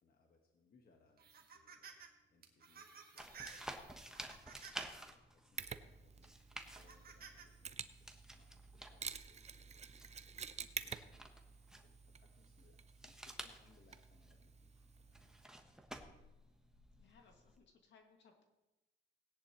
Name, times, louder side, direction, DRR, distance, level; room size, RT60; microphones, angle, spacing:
voice 1, 0.0-3.8 4.2-15.8, left 4 dB, 50° left, 2 dB, 1.4 m, -72 dB
sound 1, 1.2-2.1 2.4-5.0 5.6-5.7 6.6-7.5, right 6 dB, 50° right, 1.6 m, -55 dB
sound 2, 3.2-17.6, right 1 dB, 5° right, 1.1 m, -54 dB
Mechanisms, 5.6-15.4, right 6 dB, 35° right, 0.6 m, -50 dB
voice 2, 17.0-18.4, left 5 dB, 65° left, 3 dB, 2.1 m, -66 dB
17.5 x 10.0 x 3.0 m, 1.0 s
cardioid pair, 90°, 20 cm